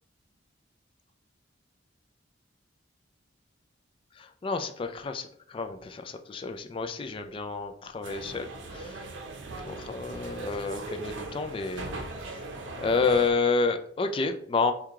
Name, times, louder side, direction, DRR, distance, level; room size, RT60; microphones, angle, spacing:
voice 1, 4.1-9.1 9.6-12.0 12.3-12.4 12.8-14.7, left 4 dB, 30° left, 7 dB, 0.3 m, -30 dB
sound 1, 8.0-13.3, right 2 dB, 80° right, 0.6 m, -39 dB
4.6 x 2.3 x 3.5 m, 0.62 s
head